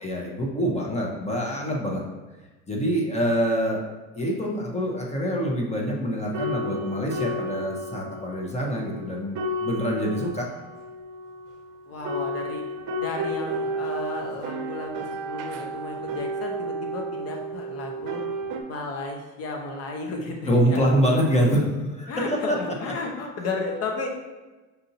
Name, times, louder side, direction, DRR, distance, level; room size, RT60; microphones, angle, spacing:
voice 1, 0.0-2.0 2.7-3.8 4.1-10.5 20.5-22.6 22.8-22.9, equal, 20° left, -1 dB, 0.9 m, -25 dB
sound 1, 5.7-5.9 6.3-18.6, right 1 dB, 70° right, 0.6 m, -32 dB
voice 2, 11.9-12.6 13.0-18.2 18.7-20.9 22.1-24.1, left 3 dB, 50° left, 2 dB, 0.9 m, -33 dB
5.6 x 2.6 x 2.7 m, 1.2 s
supercardioid pair, 100°, 32 cm